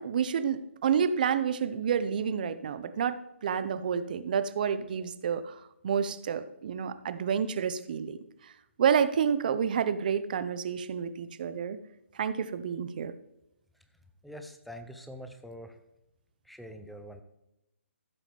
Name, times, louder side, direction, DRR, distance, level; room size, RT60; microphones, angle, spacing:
voice 1, 0.0-8.2 8.4-8.5 8.8-11.8 12.1-13.1, right 7 dB, 40° right, 13 dB, 0.6 m, -29 dB
voice 2, 14.2-15.8 16.4-17.2, equal, ahead, 7 dB, 0.6 m, -44 dB
15.0 x 7.1 x 3.5 m, 0.86 s
figure-of-eight pair, 135°, 7 cm